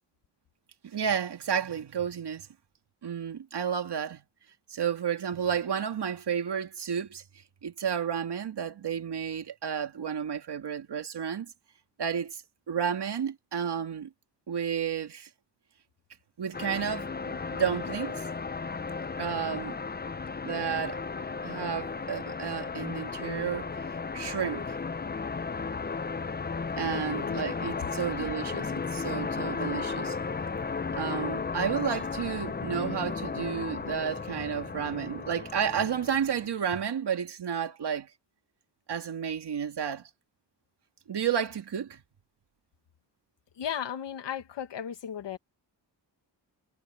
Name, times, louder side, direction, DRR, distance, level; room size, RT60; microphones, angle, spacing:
voice 1, 0.8-2.5 3.0-4.2 4.7-7.2 7.6-11.5 12.0-12.4 12.7-14.1 14.5-15.3 16.4-18.2 19.2-19.8 20.4-21.0 21.4-24.8 26.8-30.2 31.0-38.1 38.9-40.1 41.1-42.0, right 8 dB, 65° right, 2.5 m, -32 dB
sound 1, 16.5-36.5, left 4 dB, 25° left, 0.7 m, -34 dB
voice 2, 26.9-27.4 43.6-45.4, left 9 dB, 80° left, 2.1 m, -36 dB
cardioid pair, 80°, 43 cm